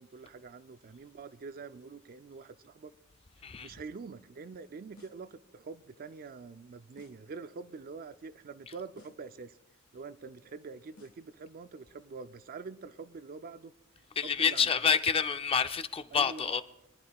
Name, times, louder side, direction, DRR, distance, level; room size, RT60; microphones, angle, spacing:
voice 1, 0.0-2.9 3.6-9.6 9.9-13.7 14.2-15.0 16.1-16.5, right 4 dB, 40° right, 0.4 m, -45 dB
sound 1, 5.0-5.4 7.0-7.4 9.0-9.4 11.0-11.4, left 3 dB, 85° left, 1.7 m, -59 dB
voice 2, 14.2-16.6, left 6 dB, 25° left, 0.4 m, -28 dB
23.5 x 10.5 x 2.3 m
head